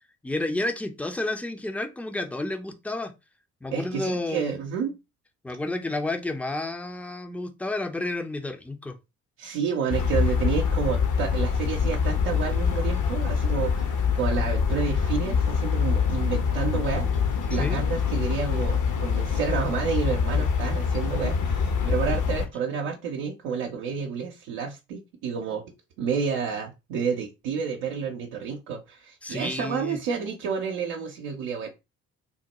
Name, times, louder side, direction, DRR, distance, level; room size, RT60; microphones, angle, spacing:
voice 1, 0.2-3.1 3.6-4.5 5.4-9.0 17.5-17.9 29.2-30.0, left 2 dB, 5° left, 0.4 m, -31 dB
voice 2, 3.7-5.0 9.4-25.6 26.0-31.7, right 6 dB, 75° right, 0.7 m, -30 dB
sound 1, 9.9-22.5, left 6 dB, 45° left, 0.7 m, -25 dB
3.6 x 2.1 x 2.9 m
hypercardioid pair, 45°, 42 cm